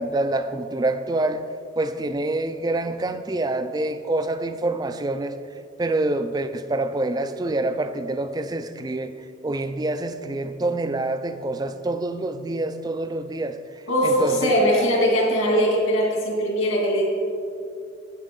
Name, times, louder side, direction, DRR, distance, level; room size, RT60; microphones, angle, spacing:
voice 1, 0.0-1.4 1.8-5.4 5.8-9.1 9.4-14.5, right 2 dB, 20° right, 10 dB, 0.3 m, -26 dB
voice 2, 13.9-17.1, equal, 70° left, -3 dB, 2.7 m, -21 dB
12.0 x 8.8 x 3.8 m, 2.4 s
head